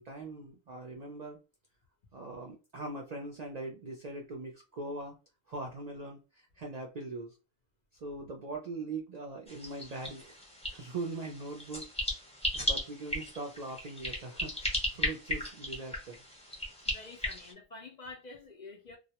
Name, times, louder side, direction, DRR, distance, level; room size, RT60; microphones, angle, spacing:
voice 1, 0.0-1.4 2.1-5.2 5.5-7.4 7.9-11.9 12.5-16.2, right 2 dB, 55° right, 0.4 m, -41 dB
sound 1, 9.5-17.5, equal, 5° left, 0.6 m, -36 dB
voice 2, 16.9-19.0, left 3 dB, 55° left, 0.5 m, -48 dB
2.3 x 2.0 x 2.7 m
omnidirectional pair, 1.1 m